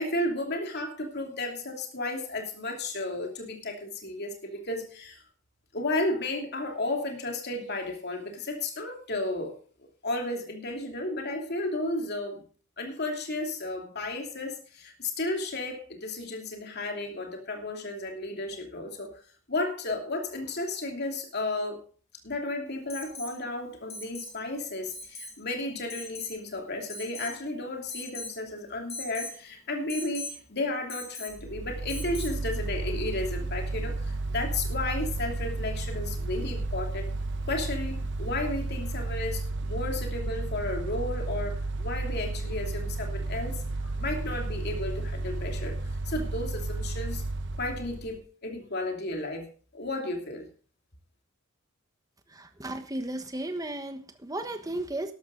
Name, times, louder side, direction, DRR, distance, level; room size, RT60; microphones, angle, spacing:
voice 1, 0.0-5.2 5.7-12.4 12.8-19.1 19.5-21.8 22.2-37.1 37.5-45.8 46.1-47.2 47.6-49.5 49.7-50.5, left 2 dB, 50° left, 2.8 m, -33 dB
Alarm, 22.9-23.4 23.9-24.4 24.9-25.4 25.9-26.4 26.9-27.4 27.9-28.4 28.9-29.4 29.9-30.4 30.9-31.4 31.9-32.4 34.1-34.2, left 2 dB, 30° left, 2.0 m, -40 dB
Mechanical fan, 31.3-48.2, right 2 dB, 55° right, 1.0 m, -32 dB
voice 2, 52.3-55.1, right 1 dB, 15° right, 1.3 m, -35 dB
12.5 x 12.0 x 3.9 m
head